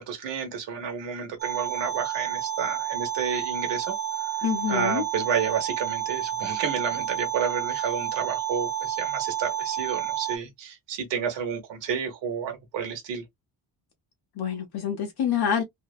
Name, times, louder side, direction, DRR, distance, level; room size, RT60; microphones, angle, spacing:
voice 1, 0.0-3.9 4.2-4.4 4.7-13.2, right 7 dB, 70° right, 1.0 m, -30 dB
sound 1, 1.4-10.4, right 10 dB, 25° right, 0.4 m, -30 dB
voice 2, 4.4-5.0 14.4-15.6, left 8 dB, 55° left, 0.7 m, -26 dB
2.6 x 2.1 x 2.3 m
cardioid pair, 155°, 45 cm